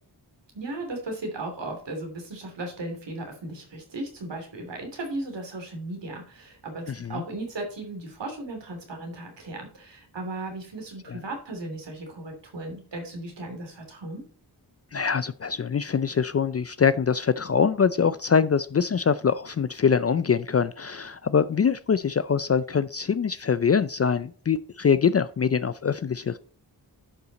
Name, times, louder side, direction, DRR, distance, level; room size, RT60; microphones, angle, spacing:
voice 1, 0.5-14.2, right 2 dB, 85° right, 3.0 m, -36 dB
voice 2, 6.9-7.2 11.1-11.2 14.9-26.4, left 6 dB, 35° left, 0.4 m, -24 dB
10.5 x 5.7 x 4.0 m
wide cardioid pair, 80°, 42 cm